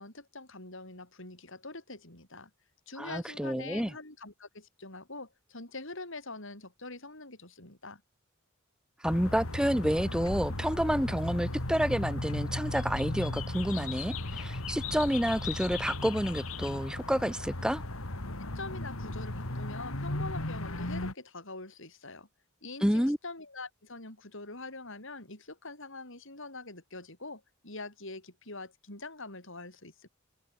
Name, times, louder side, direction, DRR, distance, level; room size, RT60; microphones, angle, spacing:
voice 1, 0.0-2.5 2.9-8.0 18.5-22.3 22.6-30.1, left 3 dB, 65° left, 7.6 m, -44 dB
voice 2, 3.0-3.9 9.0-17.8 22.8-23.2, equal, 5° right, 3.7 m, -29 dB
sound 1, 9.0-21.1, left 2 dB, 85° left, 3.0 m, -36 dB
head